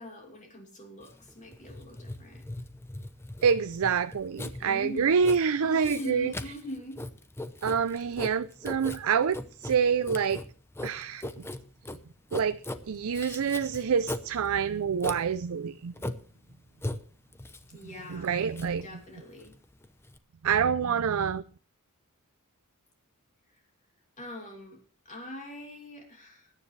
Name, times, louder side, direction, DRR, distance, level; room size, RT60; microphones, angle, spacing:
voice 1, 0.0-2.4 4.6-5.1 5.6-7.0 17.7-18.3 18.8-19.5 24.2-24.8 25.0-26.5, equal, 35° left, 2.8 m, -42 dB
Writing, 1.0-20.2, left 1 dB, 10° left, 0.8 m, -40 dB
voice 2, 3.4-6.3 7.6-10.4 10.8-11.3 12.3-12.6 12.9-15.9 18.1-18.9 20.4-21.4, right 6 dB, 70° right, 0.5 m, -27 dB
21.0 x 9.9 x 3.2 m
head